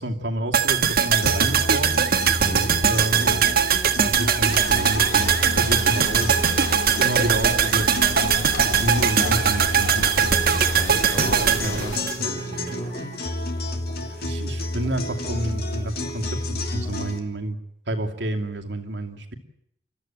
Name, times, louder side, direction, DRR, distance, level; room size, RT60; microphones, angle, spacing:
voice 1, 0.0-2.0 2.9-3.5 4.0-6.4 7.0-10.1 11.3-12.0 14.0-17.6 17.9-19.3, right 1 dB, 80° right, 4 dB, 2.5 m, -29 dB
sound 1, 0.5-12.7 13.0-13.1, right 7 dB, 55° right, 1.7 m, -21 dB
sound 2, 1.2-17.2, left 1 dB, 60° left, 2.8 m, -30 dB
voice 2, 2.4-2.7 10.5-13.1, right 1 dB, 25° left, -2 dB, 5.6 m, -34 dB
sound 3, 4.4-12.0, left 3 dB, 80° left, 2.6 m, -35 dB
30.0 x 13.5 x 9.1 m, 0.78 s
head